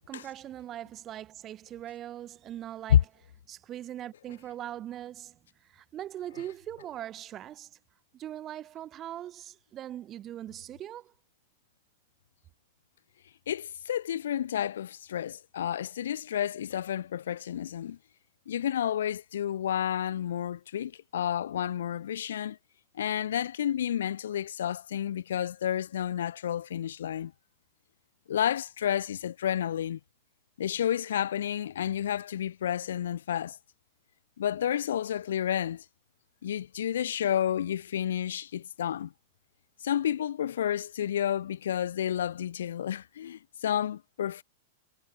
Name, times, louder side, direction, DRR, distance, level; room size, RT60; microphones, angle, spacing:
voice 1, 0.1-3.0 3.5-5.4 5.7-7.8 8.1-11.1, right 12 dB, 20° right, 3.2 m, -41 dB
voice 2, 13.5-18.0 18.5-22.6 22.9-27.3 28.3-30.0 30.6-33.6 34.4-35.8 36.4-39.1 39.8-44.4, left 10 dB, 90° left, 0.5 m, -30 dB
supercardioid pair, 170°, 0 cm